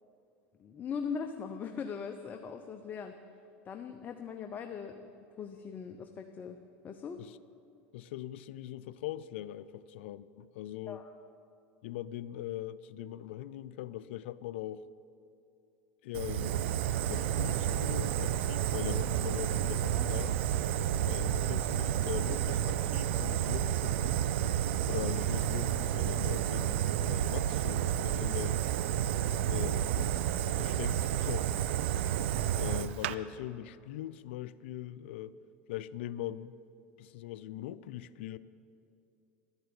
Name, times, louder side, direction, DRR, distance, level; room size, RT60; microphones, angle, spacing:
voice 1, 0.6-3.1 3.6-5.1 5.4-6.6 6.8-7.2 10.9-11.1 19.9-20.1 21.3-21.5 21.8-21.9, left 6 dB, 30° left, 6 dB, 0.7 m, -40 dB
voice 2, 7.9-11.0 11.8-14.8 16.0-16.8 17.0-20.4 21.1-24.2 24.9-28.6 29.4-30.3 30.5-31.5 32.6-35.4 35.7-36.5 37.0-38.4, left 12 dB, 80° left, 15 dB, 0.5 m, -41 dB
Fire, 16.1-33.1, right 11 dB, 80° right, 0.5 m, -30 dB
12.0 x 8.1 x 9.6 m, 2.6 s
supercardioid pair, 115°, 6 cm